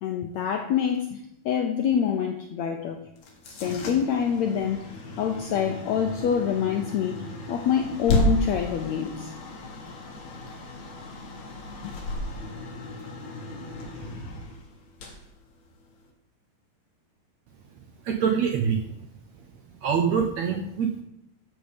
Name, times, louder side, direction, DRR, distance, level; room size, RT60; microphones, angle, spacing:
voice 1, 0.0-1.2 1.4-3.0 3.6-4.9 5.2-9.3, left 8 dB, 75° left, 4 dB, 1.6 m, -26 dB
sound 1, 3.2-16.1, left 1 dB, 55° left, 3.2 m, -33 dB
voice 2, 18.0-19.1 19.4-19.5 19.8-21.0, right 6 dB, 70° right, 4 dB, 1.7 m, -25 dB
14.0 x 7.8 x 5.2 m, 0.81 s
omnidirectional pair, 4.2 m